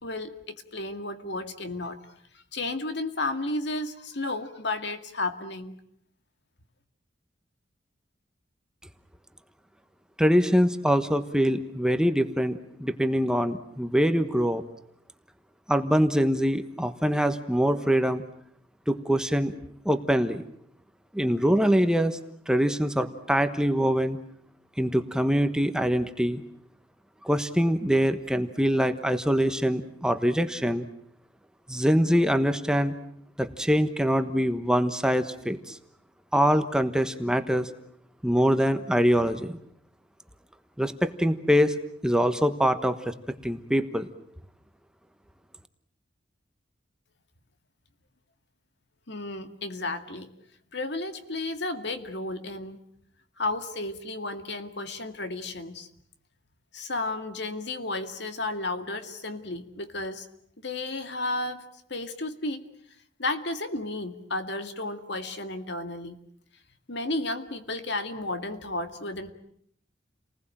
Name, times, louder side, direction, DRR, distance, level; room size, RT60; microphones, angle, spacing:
voice 1, 0.0-2.0 2.3-5.8 49.1-50.3 50.7-52.8 53.4-55.9 56.7-60.3 60.6-61.6 61.9-62.7 63.2-66.2 66.9-69.3, left 2 dB, 65° left, 8 dB, 2.2 m, -33 dB
voice 2, 10.2-14.6 15.7-18.2 18.9-19.5 19.8-20.5 21.1-22.2 22.5-24.2 24.8-26.4 27.2-30.9 31.7-32.9 33.4-35.8 36.3-37.7 38.2-39.6 40.8-41.7 42.0-43.1 43.4-44.1, equal, 5° right, 8 dB, 1.2 m, -24 dB
30.0 x 20.0 x 8.9 m, 0.71 s
head